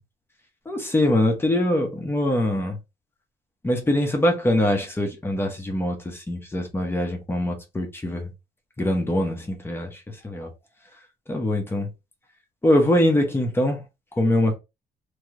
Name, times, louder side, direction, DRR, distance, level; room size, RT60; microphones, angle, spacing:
voice 1, 0.7-2.8 3.6-8.3 8.8-10.5 11.3-11.9 12.6-13.8 14.2-14.6, left 1 dB, 15° left, 0.9 m, -23 dB
3.0 x 2.9 x 2.5 m
cardioid pair, 110°, 17 cm